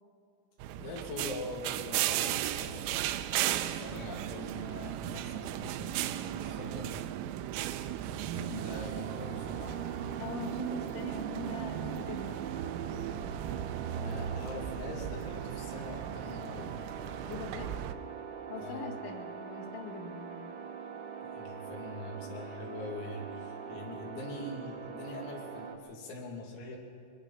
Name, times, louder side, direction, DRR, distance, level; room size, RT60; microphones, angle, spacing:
sound 1, 0.6-17.9, right 12 dB, 85° right, 3.4 m, -36 dB
voice 1, 0.8-7.1 8.1-9.9 13.9-16.7 18.6-18.9 21.2-26.8, left 2 dB, 90° left, -1 dB, 5.5 m, -43 dB
sound 2, 8.6-25.8, right 6 dB, 65° right, 2.1 m, -43 dB
voice 2, 10.2-12.5 17.3-17.7 18.5-20.5, left 4 dB, 65° left, 1 dB, 4.3 m, -42 dB
23.0 x 20.5 x 5.7 m, 2.7 s
omnidirectional pair, 5.9 m